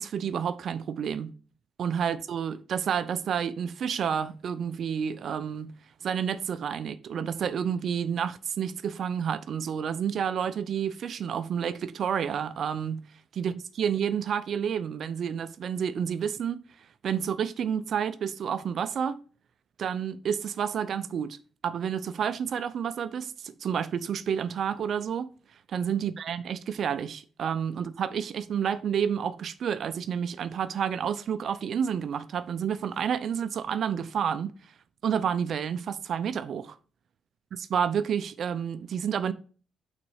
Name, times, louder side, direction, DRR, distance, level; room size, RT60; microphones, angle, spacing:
voice 1, 0.0-1.3 1.8-5.7 6.0-13.0 13.3-16.6 17.0-19.2 19.8-21.4 21.6-25.3 25.7-34.5 35.0-36.7 37.7-39.3, right 8 dB, 60° right, 0.6 m, -30 dB
5.9 x 4.2 x 6.3 m
cardioid pair, 90°, 0 cm